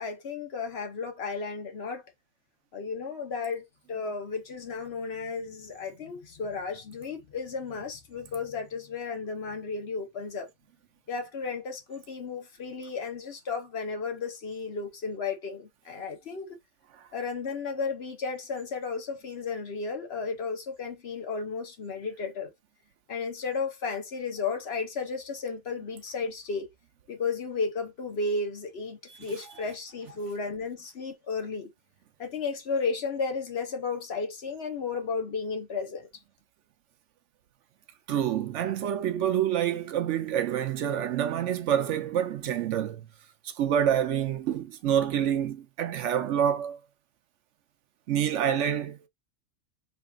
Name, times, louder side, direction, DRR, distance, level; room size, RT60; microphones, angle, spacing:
voice 1, 0.0-2.0 2.7-3.6 3.9-10.5 11.1-16.6 17.1-22.5 23.1-26.7 27.1-31.7 32.2-36.1, left 4 dB, 55° left, 1.0 m, -33 dB
voice 2, 38.1-43.0 43.6-46.8 48.1-49.1, right 9 dB, 70° right, 0.9 m, -27 dB
4.3 x 3.2 x 2.3 m
omnidirectional pair, 1.4 m